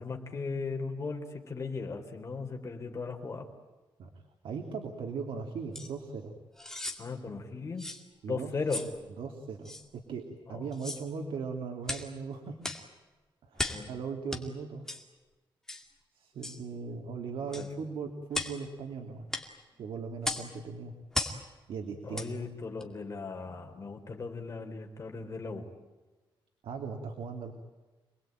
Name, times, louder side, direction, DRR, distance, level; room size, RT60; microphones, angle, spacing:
voice 1, 0.0-3.5 7.0-7.9 8.3-8.8 10.5-10.7 13.6-13.9 17.5-17.7 22.0-25.7, left 4 dB, 35° left, 3 dB, 3.8 m, -37 dB
voice 2, 4.4-6.3 8.2-8.5 9.2-10.2 10.5-12.6 13.4-14.8 16.1-19.3 19.8-20.9 21.7-22.2 26.6-27.5, right 5 dB, 85° right, 4 dB, 2.7 m, -38 dB
sound 1, 5.7-5.9 6.6-7.0 7.8-8.0 8.7-8.9 9.7-9.8 10.7-11.1 11.8-12.1 12.6-12.9 13.6-13.9 14.3-14.4 14.9-15.0 15.7-15.9 16.4-16.6 17.5-17.7 18.3-18.6 19.3-19.5 20.2-20.5 21.1-21.4 22.1-22.3 22.8-22.9, left 2 dB, 5° left, 2.5 m, -36 dB
27.5 x 20.5 x 9.1 m, 1.2 s
wide cardioid pair, 155°, 9 cm